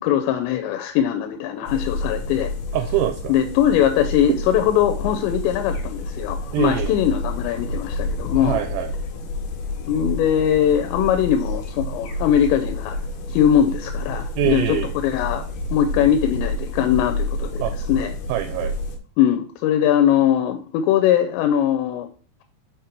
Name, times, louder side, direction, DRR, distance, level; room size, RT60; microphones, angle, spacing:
voice 1, 0.0-2.5 3.3-8.6 9.9-13.0 13.3-14.8 15.0-15.5 15.7-17.6 17.9-18.1 19.2-22.1, left 10 dB, 90° left, 6 dB, 2.9 m, -21 dB
sound 1, 1.7-19.0, left 2 dB, 75° left, 2.0 m, -29 dB
voice 2, 2.7-3.3 6.5-7.0 8.4-8.9 14.3-14.9 17.6-17.8 18.3-18.8, right 12 dB, 85° right, 8 dB, 2.6 m, -24 dB
6.1 x 5.2 x 4.4 m, 0.40 s
omnidirectional pair, 5.0 m